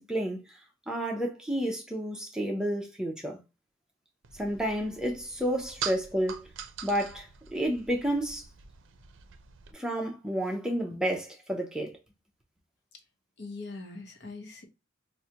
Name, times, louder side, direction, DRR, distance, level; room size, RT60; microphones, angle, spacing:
voice 1, 0.1-0.6 0.9-3.4 4.3-6.5 6.8-8.5 9.7-12.0, equal, 5° right, 0.5 m, -31 dB
sound 1, 4.2-9.7, right 8 dB, 75° right, 0.5 m, -43 dB
voice 2, 13.4-14.6, left 3 dB, 55° left, 0.8 m, -42 dB
4.6 x 2.1 x 2.8 m
head